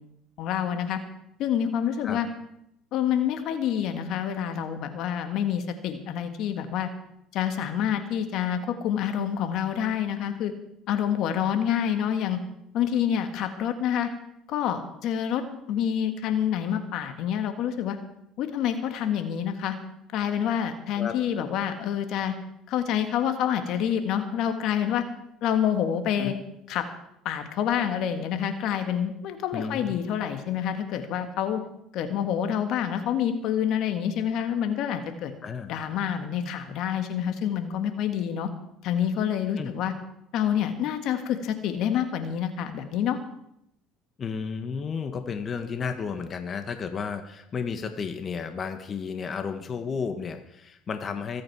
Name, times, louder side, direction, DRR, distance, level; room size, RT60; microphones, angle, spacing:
voice 1, 0.4-1.0 1.4-2.3 2.9-6.9 7.3-10.5 10.9-12.4 12.7-14.1 14.5-18.0 18.4-19.8 20.1-22.3 22.7-25.0 25.4-26.3 26.7-26.9 27.3-31.6 31.9-35.3 35.7-38.5 38.8-39.9 40.3-43.2, left 9 dB, 65° left, 7 dB, 1.7 m, -27 dB
voice 2, 29.5-30.0 35.4-35.7 39.6-39.7 44.2-51.4, left 6 dB, 40° left, 7 dB, 1.4 m, -32 dB
24.0 x 8.6 x 4.8 m, 0.79 s
supercardioid pair, 90°, 0 cm